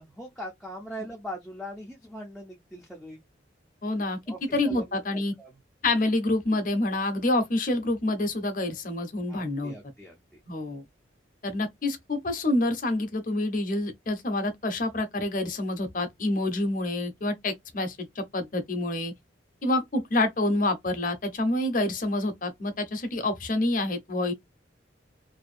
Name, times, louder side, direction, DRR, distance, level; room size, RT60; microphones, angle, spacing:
voice 1, 0.0-3.2 4.3-5.5 9.3-10.4, equal, ahead, 0.4 m, -41 dB
voice 2, 3.8-4.2 4.5-5.3 5.8-9.7 10.5-10.8 11.4-19.1 19.6-24.3, left 2 dB, 45° left, 0.6 m, -27 dB
2.6 x 2.2 x 2.4 m
head